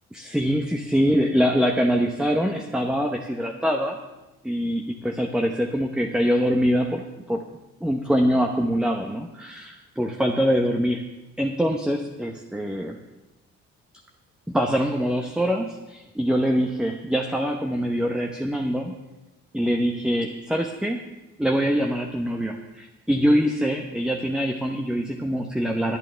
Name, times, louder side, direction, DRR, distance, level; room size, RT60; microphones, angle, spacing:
voice 1, 0.1-4.0 4.4-7.0 7.3-7.4 7.8-11.0 11.4-13.0 14.5-18.9 19.5-21.0 21.4-26.0, equal, 5° right, 3 dB, 0.9 m, -24 dB
23.0 x 9.1 x 3.4 m, 1.0 s
cardioid pair, 90°, 30 cm